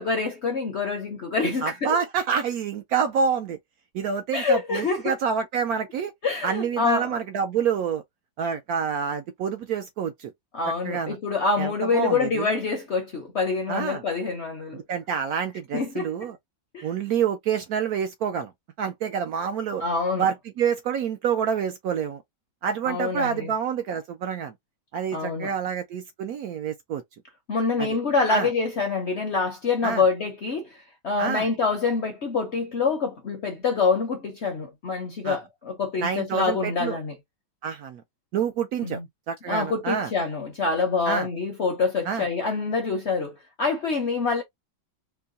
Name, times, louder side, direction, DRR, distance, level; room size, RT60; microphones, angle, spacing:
voice 1, 0.0-2.0 4.3-5.0 6.2-7.1 10.5-14.8 15.7-16.1 16.7-16.9 19.8-20.3 22.8-23.5 25.1-25.5 27.5-37.1 38.8-39.1 39.5-44.4, left 4 dB, 55° left, 0.7 m, -26 dB
voice 2, 1.6-3.6 3.9-6.1 6.4-8.0 8.4-10.3 10.8-11.2 11.6-12.5 13.7-14.0 14.9-16.4 16.8-18.5 18.8-19.8 20.2-22.2 22.6-24.5 24.9-27.0 27.8-28.0 28.3-28.5 29.8-30.0 31.2-31.5 35.2-35.4 36.0-37.0 37.6-38.0 38.3-39.0 39.3-40.1 41.1-41.3 42.0-42.2, right 7 dB, 70° right, 0.9 m, -27 dB
4.5 x 2.2 x 2.5 m
omnidirectional pair, 1.9 m